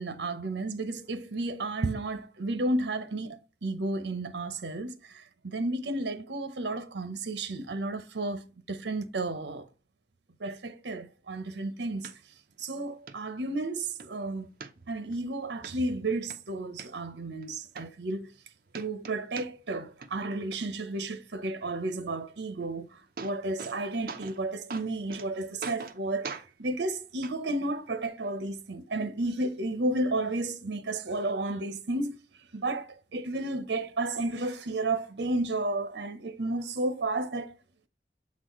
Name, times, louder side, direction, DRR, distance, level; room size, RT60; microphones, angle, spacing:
voice 1, 0.0-4.9 5.4-8.4 8.7-9.7 10.4-12.1 12.6-14.5 14.9-18.3 18.7-22.9 23.2-32.2 32.5-37.5, right 2 dB, 85° right, 0.8 m, -32 dB
sound 1, 12.0-12.1 12.6-12.7 13.1-13.2 13.6-14.1 14.6-15.2 15.6-15.7 16.1-16.9 17.4-17.5 17.7-18.4 18.7-19.8 20.0-20.6 22.6-22.7 22.9-23.8 24.1-24.4 24.7-25.3 25.6-26.0 26.2-26.5 27.2-27.3 28.2-28.3, right 5 dB, 50° right, 0.6 m, -41 dB
7.4 x 4.1 x 3.0 m
head